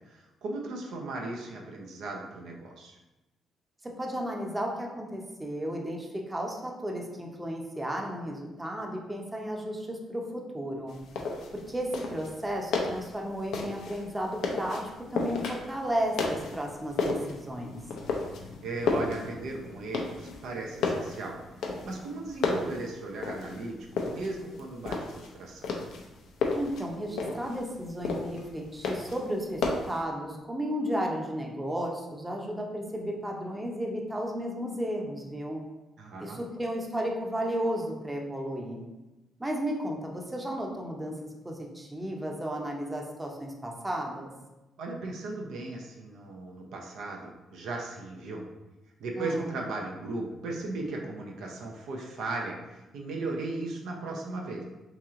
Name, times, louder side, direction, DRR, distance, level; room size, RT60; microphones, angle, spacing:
voice 1, 0.1-3.0 18.6-21.4 21.8-25.7 36.0-36.4 44.8-48.4 49.0-54.6, right 2 dB, 75° right, 0 dB, 0.5 m, -37 dB
voice 2, 3.8-11.0 11.7-14.8 15.1-17.8 26.5-35.6 36.2-38.8 39.4-41.1 41.4-44.3 49.1-49.6, equal, 15° right, 0 dB, 0.6 m, -33 dB
sound 1, 10.9-30.0, left 4 dB, 80° left, 0.5 m, -34 dB
3.0 x 2.9 x 3.6 m, 1.0 s
cardioid pair, 90°, 0 cm